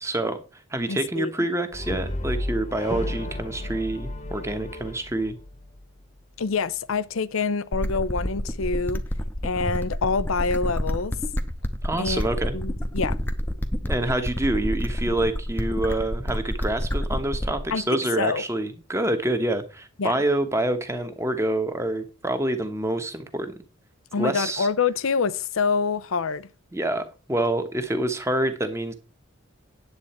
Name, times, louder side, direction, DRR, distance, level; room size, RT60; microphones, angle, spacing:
voice 1, 0.0-0.4 0.7-5.4 11.8-12.6 13.9-23.5 24.2-24.7 26.7-28.9, right 1 dB, 15° right, 1.0 m, -27 dB
voice 2, 0.9-1.3 6.4-9.0 9.4-11.1 12.0-12.2 12.5-13.2 17.7-18.4 20.0-20.2 24.1-26.5, left 5 dB, 85° left, 0.6 m, -26 dB
Brass instrument, 1.7-6.0, left 1 dB, 35° left, 1.0 m, -32 dB
sound 1, 7.7-17.7, equal, 10° left, 0.7 m, -28 dB
9.7 x 7.7 x 4.3 m
head